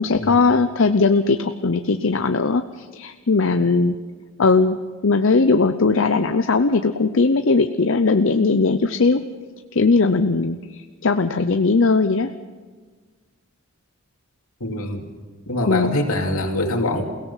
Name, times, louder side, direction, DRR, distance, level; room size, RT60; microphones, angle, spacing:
voice 1, 0.0-4.0 4.4-4.8 5.0-9.2 9.7-12.3 15.7-16.0, left 4 dB, 60° left, 8 dB, 0.6 m, -19 dB
voice 2, 14.6-15.1 15.5-17.0, left 1 dB, 80° left, 2 dB, 2.7 m, -24 dB
28.5 x 17.0 x 5.7 m, 1.4 s
head